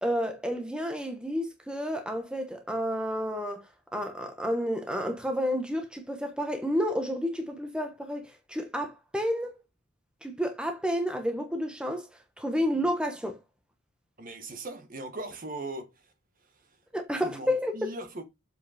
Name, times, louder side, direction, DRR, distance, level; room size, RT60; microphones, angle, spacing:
voice 1, 0.0-3.6 3.9-9.6 10.2-12.1 12.4-13.4 16.9-17.9, equal, 5° right, 1.1 m, -30 dB
voice 2, 14.2-15.9 17.2-18.2, right 2 dB, 40° right, 1.4 m, -39 dB
7.4 x 5.2 x 4.9 m
head